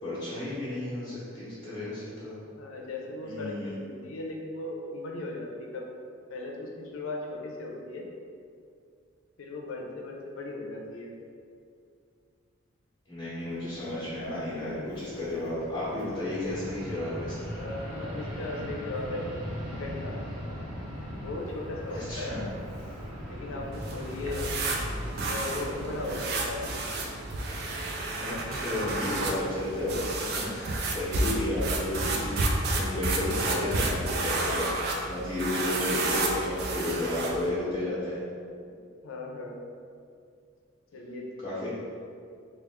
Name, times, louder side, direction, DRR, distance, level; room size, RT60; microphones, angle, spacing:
voice 1, 0.0-2.4 3.2-3.7 13.1-17.5 21.9-22.4 28.2-32.3 32.7-38.2 41.4-41.7, left 1 dB, 25° left, -11 dB, 0.9 m, -33 dB
voice 2, 2.6-5.9 6.3-8.0 9.4-11.1 17.5-20.2 21.2-22.3 23.3-24.5 25.3-26.6 38.6-38.8 39.0-39.6 40.9-41.3, left 2 dB, 90° left, 0 dB, 0.6 m, -37 dB
Fixed-wing aircraft airplane, 13.4-31.2, equal, 85° right, 1.0 m, -41 dB
sound 1, 23.7-37.5, right 2 dB, 50° right, 0.4 m, -31 dB
3.4 x 2.4 x 3.6 m, 2.3 s
head